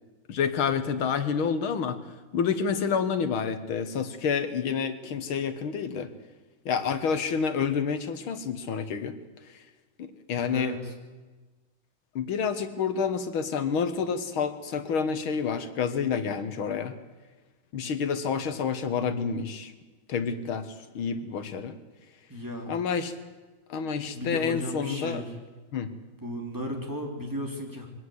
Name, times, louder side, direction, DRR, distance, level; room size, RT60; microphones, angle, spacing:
voice 1, 0.3-2.0 2.3-6.1 6.7-9.1 10.0-10.7 12.2-16.9 17.7-19.7 20.1-21.8 22.7-23.1 23.7-25.2 25.7-25.9, left 6 dB, 75° left, 10 dB, 2.2 m, -28 dB
voice 2, 10.3-10.9 22.3-22.7 24.0-25.3 26.2-27.9, equal, 10° right, 1 dB, 3.3 m, -35 dB
22.5 x 17.5 x 8.1 m, 1.3 s
omnidirectional pair, 2.3 m